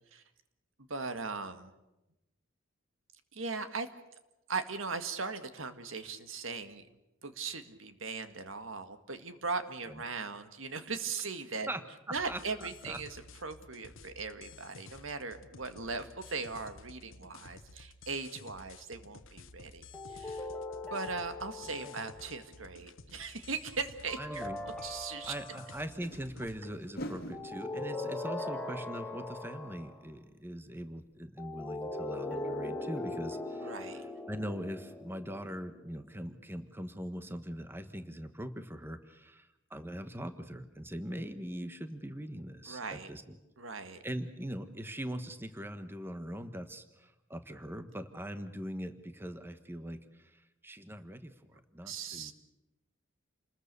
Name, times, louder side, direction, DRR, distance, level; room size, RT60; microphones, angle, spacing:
voice 1, 0.8-1.7 3.3-3.9 4.5-6.8 7.2-11.7 12.1-20.5 20.9-24.5 24.8-25.3 33.6-34.0 42.7-43.1 43.6-44.0 51.9-52.3, right 4 dB, 80° right, 9 dB, 1.9 m, -39 dB
voice 2, 12.1-13.0 21.8-21.9 24.2-24.6 25.3-43.4 44.0-52.3, equal, 10° right, 9 dB, 1.2 m, -41 dB
sound 1, 12.2-26.6, left 3 dB, 75° left, 1.2 m, -53 dB
sound 2, 19.9-22.4 24.1-25.9 27.3-30.0 31.4-35.9, left 2 dB, 5° left, 1.7 m, -40 dB
sound 3, 24.4-24.5 25.8-30.4 30.6-30.7 31.1-31.2, equal, 50° left, 2.2 m, -47 dB
29.0 x 20.5 x 6.9 m, 0.95 s
head